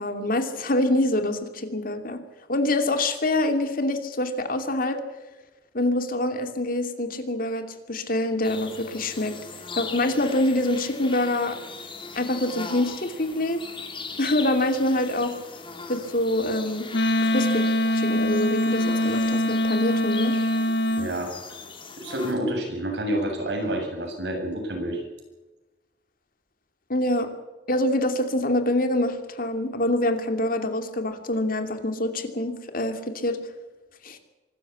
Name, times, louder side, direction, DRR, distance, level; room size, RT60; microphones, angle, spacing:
voice 1, 0.0-2.2 2.5-5.0 5.7-9.3 9.8-11.6 12.2-13.6 14.2-15.3 15.9-16.9 17.3-17.6 17.9-20.4 26.9-27.3 27.7-33.4 34.0-34.2, left 1 dB, 55° left, 6 dB, 2.8 m, -25 dB
sound 1, 8.4-22.3, left 4 dB, 30° left, 3.0 m, -39 dB
Wind instrument woodwind instrument, 16.9-21.1, left 1 dB, 75° left, 1.7 m, -23 dB
voice 2, 21.0-21.3 22.0-25.0, right 1 dB, 85° right, 2 dB, 7.7 m, -28 dB
24.5 x 14.0 x 8.6 m, 1.1 s
head